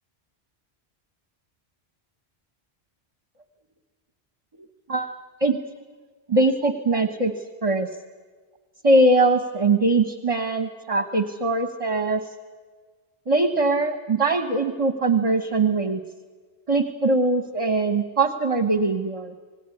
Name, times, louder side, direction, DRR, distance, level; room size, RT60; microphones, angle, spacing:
voice 1, 4.9-5.6 6.3-7.3 7.6-7.9 8.8-12.2 13.3-16.0 16.7-19.3, right 2 dB, 35° right, 8 dB, 1.1 m, -21 dB
27.0 x 19.0 x 9.8 m, 1.5 s
omnidirectional pair, 1.1 m